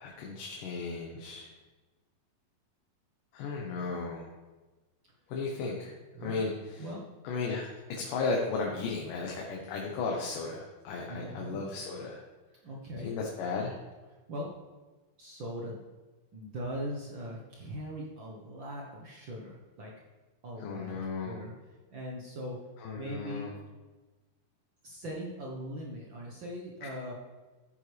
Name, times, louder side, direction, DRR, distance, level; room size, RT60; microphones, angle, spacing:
voice 1, 0.0-1.5 3.3-4.3 5.3-5.9 6.2-6.9 7.2-12.2 13.0-13.8 20.6-21.4 22.8-23.5, left 4 dB, 70° left, -1 dB, 2.6 m, -35 dB
voice 2, 11.1-11.6 12.6-13.1 14.3-14.5 15.2-15.8 16.3-19.9 20.4-22.6 22.9-23.5 24.8-27.1, equal, 75° right, -2 dB, 1.1 m, -40 dB
14.0 x 9.0 x 3.4 m, 1.2 s
omnidirectional pair, 4.1 m